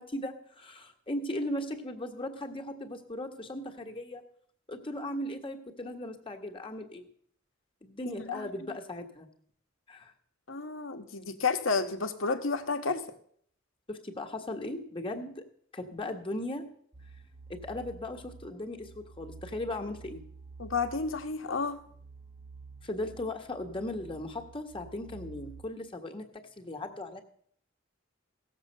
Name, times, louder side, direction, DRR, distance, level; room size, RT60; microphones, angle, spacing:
voice 1, 0.0-4.2 4.7-7.1 7.8-9.3 9.9-10.1 13.9-15.4 15.7-16.7 17.5-20.3 22.8-27.2, left 1 dB, 25° left, 3 dB, 1.6 m, -37 dB
voice 2, 8.0-8.8 10.5-13.2 20.6-21.8, left 4 dB, 75° left, 7 dB, 1.3 m, -31 dB
sound 1, 16.9-25.6, right 4 dB, 20° right, 0.8 m, -50 dB
17.0 x 7.5 x 6.6 m, 0.62 s
head